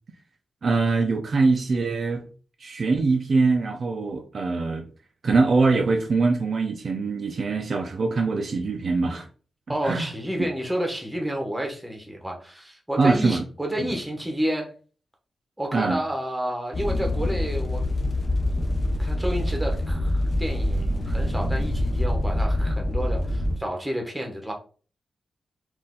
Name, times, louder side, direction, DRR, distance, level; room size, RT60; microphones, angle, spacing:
voice 1, 0.6-2.2 2.6-4.9 5.2-9.3 9.8-10.1 10.4-10.5 13.0-13.4 13.8-13.9 15.7-16.0, right 3 dB, 45° right, 0.5 m, -23 dB
voice 2, 9.7-14.7 15.6-17.8 18.4-18.6 19.0-24.5, equal, 5° right, 1.0 m, -30 dB
sound 1, 16.7-23.6, left 1 dB, 30° left, 0.6 m, -25 dB
4.2 x 2.6 x 3.8 m
wide cardioid pair, 155°, 0 cm